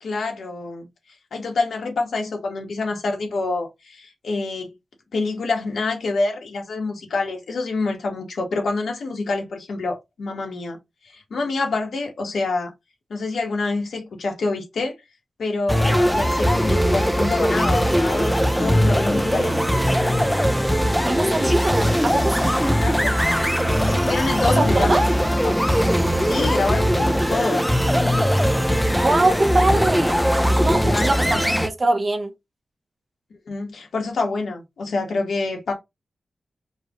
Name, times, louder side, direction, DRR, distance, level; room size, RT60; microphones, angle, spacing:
voice 1, 0.0-0.9 1.3-4.7 5.1-10.8 11.0-12.7 13.1-15.0 15.4-19.6 22.8-23.3 23.9-25.5 26.3-27.7 30.8-31.4 33.5-35.7, left 3 dB, 90° left, 1.3 m, -26 dB
sound 1, 15.7-31.7, equal, ahead, 0.3 m, -20 dB
voice 2, 21.0-22.6 24.5-25.0 28.9-30.2 30.6-31.3 31.6-32.3, right 2 dB, 30° right, 0.7 m, -22 dB
4.7 x 2.3 x 2.9 m
wide cardioid pair, 165°, 0 cm